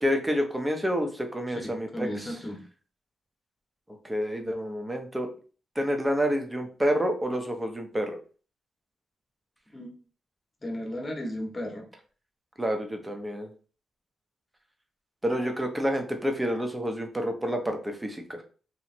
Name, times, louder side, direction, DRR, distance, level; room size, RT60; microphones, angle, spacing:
voice 1, 0.0-2.1 4.0-5.3 5.8-8.2 12.6-13.5 15.2-18.4, equal, 10° right, 5 dB, 0.8 m, -28 dB
voice 2, 1.6-2.6 9.7-10.0 10.6-11.9, equal, 20° left, 2 dB, 1.1 m, -35 dB
3.1 x 3.0 x 4.3 m, 0.38 s
cardioid pair, 130°, 0 cm